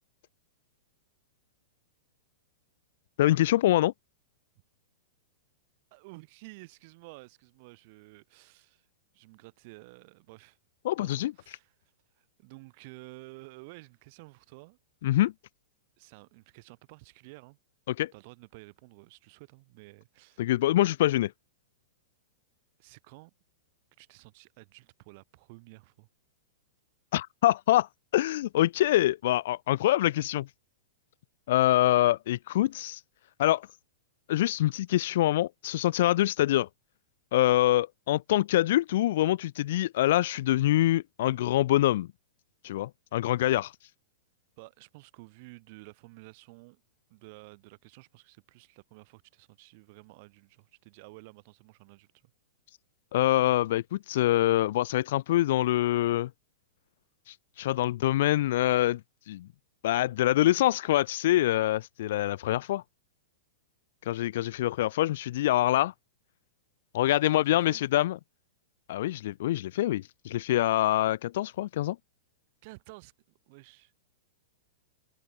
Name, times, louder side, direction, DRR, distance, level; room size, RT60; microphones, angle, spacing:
voice 1, 3.2-3.9 10.8-11.3 15.0-15.3 17.9-18.1 20.4-21.3 27.1-30.5 31.5-33.0 33.4-33.7 34.3-36.7 37.3-42.1 42.6-43.7 53.1-56.3 57.3-59.0 59.3-59.5 59.8-62.8 64.1-65.9 66.9-68.2 68.9-72.0, left 14 dB, 50° left, 0.4 m, -25 dB
voice 2, 5.9-8.9 9.1-10.6 11.0-11.7 12.2-14.8 16.0-17.6 18.1-20.5 22.8-23.3 24.0-26.1 44.6-46.8 47.1-52.3 67.1-67.8 72.6-73.1 73.5-73.9, right 26 dB, 35° right, 2.7 m, -51 dB
supercardioid pair, 170°, 0 cm